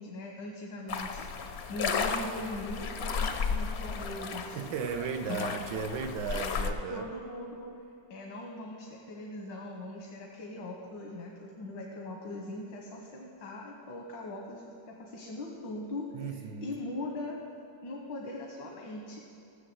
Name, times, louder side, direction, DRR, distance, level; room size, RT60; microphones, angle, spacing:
voice 1, 0.0-4.6 5.3-5.6 6.9-7.7 8.1-17.4 17.8-19.2, left 1 dB, 90° left, 0 dB, 1.8 m, -40 dB
sound 1, 0.9-6.7, left 5 dB, 60° left, 0.6 m, -34 dB
voice 2, 4.5-7.0 16.1-16.8, right 6 dB, 75° right, 6 dB, 1.3 m, -35 dB
15.5 x 6.3 x 7.8 m, 2.6 s
omnidirectional pair, 1.9 m